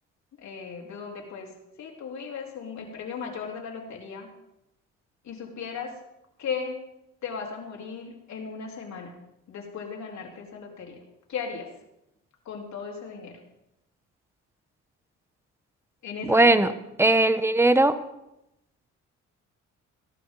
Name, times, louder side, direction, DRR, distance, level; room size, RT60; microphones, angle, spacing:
voice 1, 0.4-1.5 1.8-4.3 5.2-6.0 6.4-6.8 7.2-9.1 9.5-11.0 11.3-11.7 12.5-13.4 16.0-16.7, left 5 dB, 65° left, -1 dB, 3.7 m, -36 dB
voice 2, 16.3-16.7 17.0-17.9, right 2 dB, 10° right, 12 dB, 0.9 m, -18 dB
17.5 x 12.0 x 3.9 m, 0.88 s
cardioid pair, 90°, 30 cm